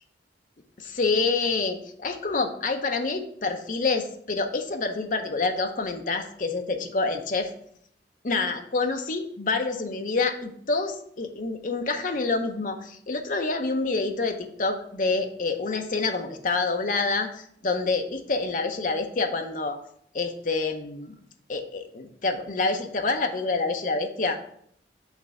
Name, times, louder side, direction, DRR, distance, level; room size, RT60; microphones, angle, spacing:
voice 1, 0.8-7.5 8.2-19.8 20.1-21.1 21.5-24.4, left 3 dB, 45° left, 5 dB, 0.7 m, -27 dB
5.7 x 3.3 x 5.3 m, 0.65 s
head